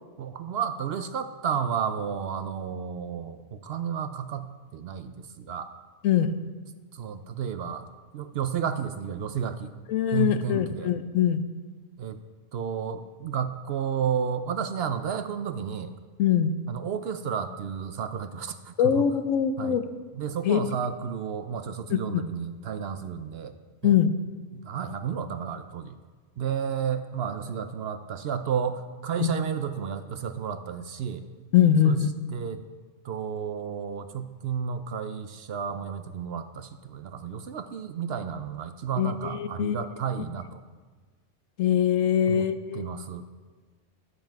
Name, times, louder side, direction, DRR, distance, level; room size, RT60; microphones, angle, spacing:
voice 1, 0.2-5.7 6.9-7.9 8.1-9.7 10.1-10.9 12.0-12.2 12.5-15.9 16.7-18.7 19.6-19.8 20.1-23.5 23.8-23.9 24.5-26.0 26.4-31.2 31.8-32.0 32.3-32.6 33.0-40.6 42.3-42.4 42.7-43.2, right 7 dB, 60° right, 10 dB, 0.7 m, -32 dB
voice 2, 6.0-6.4 9.9-11.4 16.2-16.6 18.8-19.8 20.5-20.6 21.9-22.2 23.8-24.1 29.2-29.3 31.5-32.1 39.0-39.8 41.6-42.8, left 9 dB, 85° left, 10 dB, 1.1 m, -23 dB
12.0 x 7.7 x 4.6 m, 1.4 s
omnidirectional pair, 1.3 m